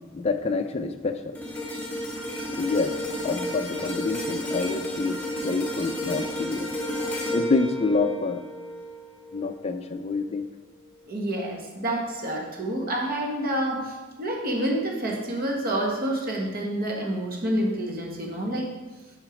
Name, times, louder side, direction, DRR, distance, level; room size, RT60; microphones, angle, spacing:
voice 1, 0.1-1.4 2.5-6.7 7.3-8.4 9.3-10.5, left 3 dB, 30° left, 7 dB, 0.4 m, -27 dB
sound 1, 1.3-9.7 10.1-10.3, equal, 5° left, 1.1 m, -32 dB
voice 2, 11.1-18.7, right 1 dB, 45° right, 0 dB, 1.4 m, -28 dB
6.2 x 5.7 x 5.0 m, 1.2 s
head